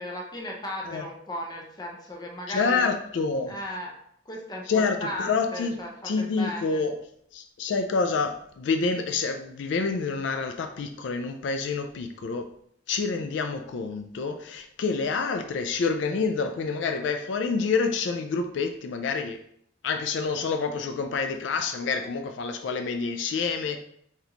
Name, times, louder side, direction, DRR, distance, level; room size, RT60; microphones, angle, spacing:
voice 1, 0.0-2.9 3.5-3.9 4.3-6.8, left 1 dB, 20° left, 0 dB, 0.7 m, -36 dB
voice 2, 2.5-3.6 4.7-5.8 6.0-7.0 7.3-12.5 12.9-19.4 19.8-23.8, left 4 dB, 70° left, 7 dB, 0.4 m, -27 dB
4.1 x 4.0 x 2.9 m, 0.69 s
head